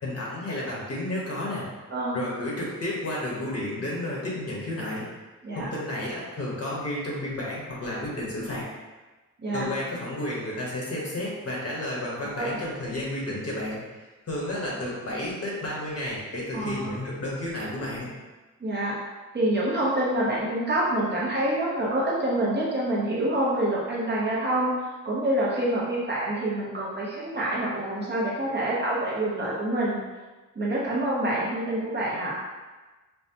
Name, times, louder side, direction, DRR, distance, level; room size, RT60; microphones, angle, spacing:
voice 1, 0.0-1.7 2.1-5.1 5.5-8.6 9.5-14.0 14.3-18.1, left 1 dB, 50° left, -5 dB, 1.1 m, -32 dB
voice 2, 16.5-16.9 18.6-19.0 19.3-24.7 25.0-30.0 30.5-32.4, right 1 dB, 35° right, -6 dB, 0.9 m, -26 dB
5.5 x 2.2 x 2.8 m, 1.2 s
wide cardioid pair, 165°, 32 cm